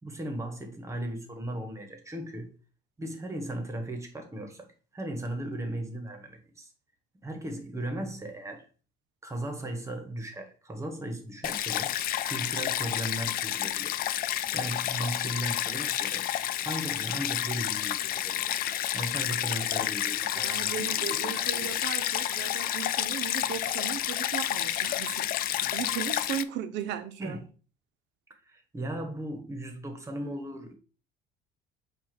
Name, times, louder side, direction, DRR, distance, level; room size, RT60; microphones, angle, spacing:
voice 1, 0.0-2.5 3.0-6.7 7.2-8.7 9.2-14.0 14.5-16.3 16.6-18.6 18.9-21.4 27.2-27.4 28.4-30.8, right 1 dB, 15° right, 1.4 m, -37 dB
Stream, 11.4-26.4, left 12 dB, 50° left, 0.5 m, -30 dB
voice 2, 20.4-27.5, right 9 dB, 70° right, 1.0 m, -37 dB
8.0 x 2.7 x 6.0 m
cardioid pair, 135°, 19 cm